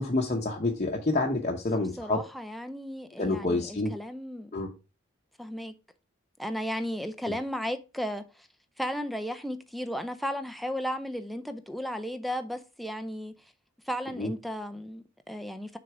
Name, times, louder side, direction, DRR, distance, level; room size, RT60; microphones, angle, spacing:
voice 1, 0.0-2.2 3.2-3.9 4.5-4.7 7.3-7.4 14.2-14.3, left 2 dB, 35° left, 0.9 m, -28 dB
voice 2, 2.0-4.5 5.4-5.7 6.4-8.5 8.8-13.3 13.9-15.8, equal, ahead, 0.5 m, -34 dB
6.4 x 3.9 x 4.8 m
head